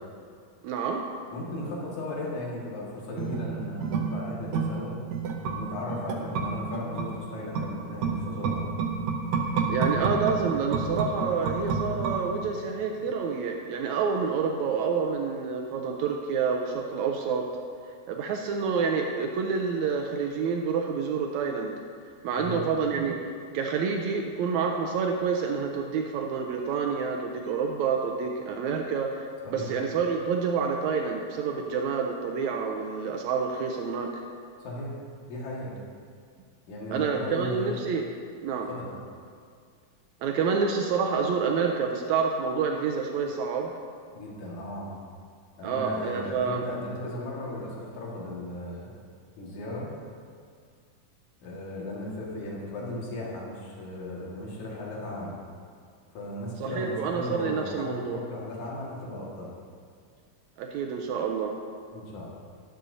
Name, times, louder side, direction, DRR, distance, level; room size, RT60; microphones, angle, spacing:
voice 1, 0.6-1.0 9.7-17.5 18.1-21.7 22.2-23.2 23.5-34.2 36.9-38.0 38.4-38.7 40.2-43.7 45.6-46.6 56.6-58.2 60.6-61.6, right 5 dB, 85° right, 2 dB, 1.6 m, -28 dB
voice 2, 1.3-5.0 5.5-8.6 22.4-22.6 29.4-29.7 34.6-34.9 35.3-35.7 36.7-37.8 38.7-38.9 44.1-44.9 45.6-48.9 49.4-49.9 51.4-55.3 56.1-59.5 61.9-62.3, left 1 dB, 60° left, -4 dB, 3.1 m, -36 dB
sound 1, 3.1-12.7 13.0-13.1, right 5 dB, 70° right, 1.7 m, -30 dB
12.0 x 11.5 x 2.7 m, 2.1 s
omnidirectional pair, 3.9 m